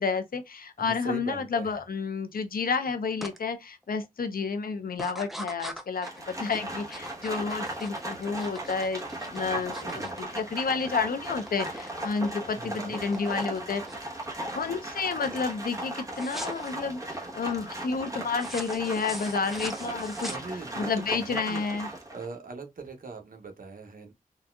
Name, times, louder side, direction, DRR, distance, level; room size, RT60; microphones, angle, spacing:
voice 1, 0.0-9.0 9.3-13.8 14.5-20.3 20.8-21.9, left 5 dB, 80° left, 0.6 m, -30 dB
voice 2, 0.8-1.8 9.7-10.2 12.4-13.0 20.3-21.6 22.1-24.1, right 3 dB, 70° right, 1.0 m, -40 dB
sound 1, 3.2-3.4 3.8-4.3 4.9-11.0 11.2-12.0 12.2-14.2 14.7-15.0 15.2-15.4 16.1-16.7 18.3-20.9, equal, ahead, 0.6 m, -42 dB
Livestock farm animals working animals, 5.9-22.3, right 1 dB, 25° right, 1.0 m, -37 dB
4.0 x 2.4 x 2.2 m
wide cardioid pair, 90°, 15 cm